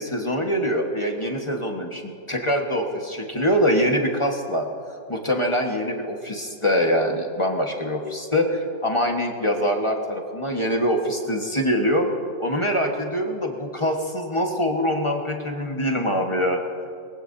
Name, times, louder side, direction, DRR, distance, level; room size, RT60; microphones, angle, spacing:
voice 1, 0.0-4.7 5.1-12.1 12.4-16.6, equal, 20° left, 2 dB, 1.1 m, -24 dB
22.5 x 16.0 x 2.7 m, 2.3 s
omnidirectional pair, 2.0 m